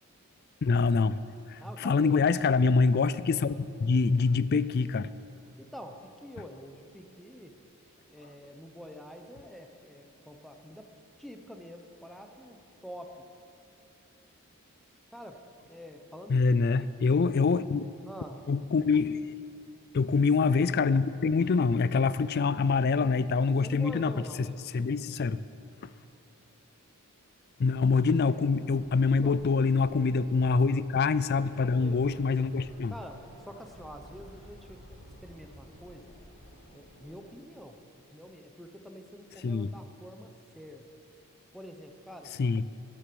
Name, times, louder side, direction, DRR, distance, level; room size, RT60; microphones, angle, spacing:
voice 1, 0.6-1.2 1.5-5.1 16.3-17.9 18.5-19.2 19.9-24.5 24.7-25.4 25.8-25.9 27.6-32.9 39.4-39.7 42.4-42.6, left 4 dB, 45° left, 16 dB, 0.4 m, -25 dB
voice 2, 1.6-2.2 5.6-7.6 8.1-10.9 11.2-13.2 15.1-16.4 16.7-16.9 18.1-18.5 23.5-24.6 28.3-28.4 29.2-29.4 30.4-30.9 31.8-32.0 32.9-34.8 35.2-36.1 36.7-37.8 38.1-40.9 41.5-42.3, equal, ahead, 4 dB, 0.8 m, -46 dB
sound 1, 28.5-37.3, equal, 85° left, 4.0 m, -52 dB
13.5 x 10.0 x 6.9 m, 2.7 s
head